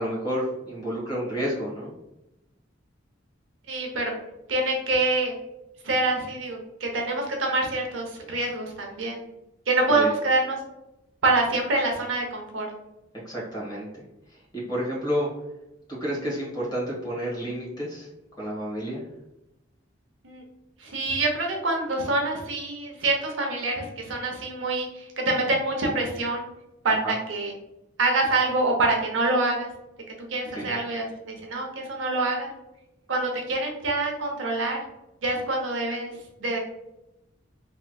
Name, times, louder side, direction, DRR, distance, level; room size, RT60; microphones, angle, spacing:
voice 1, 0.0-1.9 9.9-10.1 13.2-15.3 15.9-18.1 18.4-19.0 27.0-27.1 30.5-30.7, equal, 20° left, -5 dB, 1.3 m, -30 dB
voice 2, 3.7-4.1 4.5-5.3 5.8-9.2 9.7-10.6 11.2-12.7 20.2-20.4 20.8-26.5 26.8-27.5 28.0-29.7 30.2-32.5 33.1-34.8 35.2-36.1 36.4-36.6, right 2 dB, 80° right, 1 dB, 0.7 m, -26 dB
3.2 x 3.0 x 2.3 m, 0.92 s
head